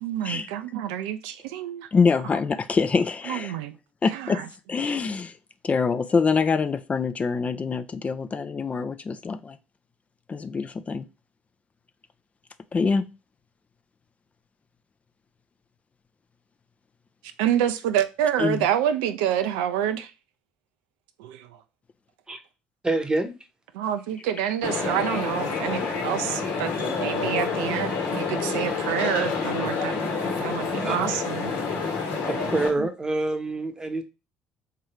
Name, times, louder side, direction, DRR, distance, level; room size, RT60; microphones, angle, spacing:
voice 1, 0.0-1.9 3.3-3.7 4.1-4.5 17.4-20.1 21.2-21.6 23.7-26.7 27.0-29.9 30.2-31.5 32.8-32.9, right 10 dB, 80° right, 0.4 m, -27 dB
voice 2, 1.9-3.5 4.0-4.4 4.7-5.3 5.6-9.6 10.3-11.1 12.7-13.1 18.4-18.6, left 5 dB, 30° left, 0.4 m, -25 dB
voice 3, 22.8-23.3 30.6-31.0 32.3-34.0, right 2 dB, 20° right, 0.9 m, -27 dB
sound 1, 24.6-32.7, left 4 dB, 70° left, 1.1 m, -28 dB
3.6 x 2.8 x 3.2 m
hypercardioid pair, 60°, 4 cm